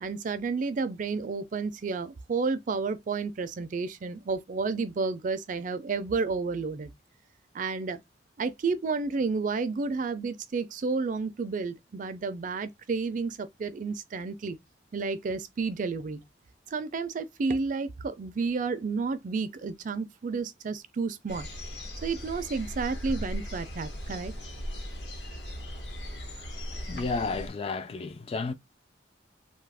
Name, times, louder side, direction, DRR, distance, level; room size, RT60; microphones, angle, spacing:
voice 1, 0.0-6.9 7.5-8.0 8.4-14.6 14.9-16.2 16.7-21.5 22.0-24.3, right 4 dB, 45° right, 0.4 m, -31 dB
sound 1, 21.3-27.5, equal, 75° left, 1.1 m, -38 dB
voice 2, 26.7-28.5, left 4 dB, 35° left, 0.3 m, -32 dB
2.7 x 2.4 x 3.4 m
head